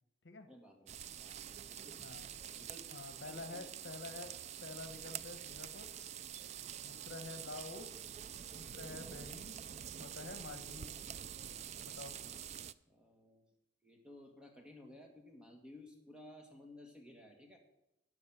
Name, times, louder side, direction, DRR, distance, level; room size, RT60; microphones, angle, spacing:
voice 1, 0.5-1.4 1.7-2.0 2.2-2.9 3.2-4.0 6.9-7.0 12.9-13.5 13.8-17.6, left 1 dB, 5° right, 2 dB, 1.8 m, -56 dB
sound 1, 0.9-12.7, right 9 dB, 40° right, 0.3 m, -47 dB
voice 2, 2.0-2.3 2.9-5.9 6.8-7.9 8.5-9.6 10.0-10.9 11.8-12.2, left 3 dB, 75° left, 9 dB, 1.2 m, -48 dB
12.0 x 5.3 x 7.9 m, 0.86 s
head